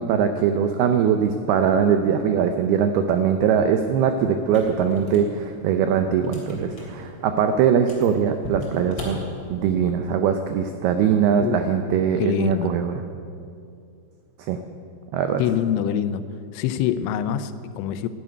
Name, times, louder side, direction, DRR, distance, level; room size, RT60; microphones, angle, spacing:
voice 1, 0.0-9.2 9.5-12.9 14.4-14.6 15.1-15.4, right 7 dB, 85° right, 7 dB, 2.2 m, -21 dB
sound 1, 4.4-9.9, left 1 dB, 30° left, 3.1 m, -39 dB
voice 2, 11.4-12.7 15.4-16.2 16.5-18.1, left 9 dB, 90° left, 12 dB, 3.2 m, -25 dB
11.5 x 11.0 x 9.2 m, 2.4 s
omnidirectional pair, 5.4 m